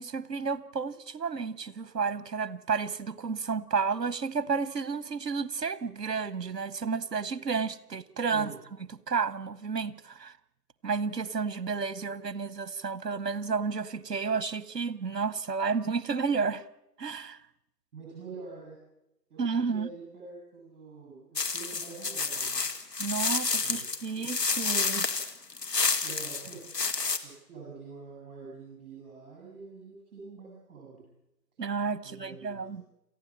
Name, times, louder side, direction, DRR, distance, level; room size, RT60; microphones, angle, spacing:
voice 1, 0.0-8.5 9.1-10.3 10.8-16.6 17.0-17.4 19.4-19.9 23.0-25.1 31.6-32.8, right 5 dB, 75° right, 17 dB, 1.1 m, -31 dB
voice 2, 17.9-18.8 19.3-19.4 19.7-22.7 23.6-24.3 26.0-26.7 27.2-31.0 32.0-32.8, right 4 dB, 35° right, -3 dB, 7.8 m, -46 dB
sound 1, 21.4-27.2, left 4 dB, 80° left, 2.2 m, -29 dB
28.0 x 15.0 x 7.6 m, 0.91 s
figure-of-eight pair, 145°, 49 cm